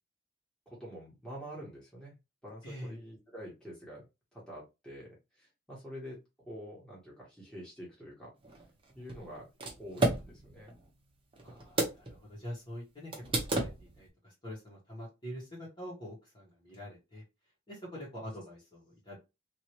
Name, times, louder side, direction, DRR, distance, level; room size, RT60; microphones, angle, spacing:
voice 1, 0.7-2.1 2.4-4.0 4.3-5.1 5.4-6.2 6.4-8.3 8.9-9.5 9.8-10.7, equal, 5° left, -6 dB, 1.4 m, -46 dB
voice 2, 2.6-3.0 11.4-13.2 13.5-17.2 17.7-19.2, equal, 25° left, -5 dB, 1.4 m, -45 dB
sound 1, 8.4-12.2 12.5-12.6 13.1-14.1, right 2 dB, 25° right, 0.8 m, -34 dB
3.1 x 2.9 x 2.9 m, 0.25 s
head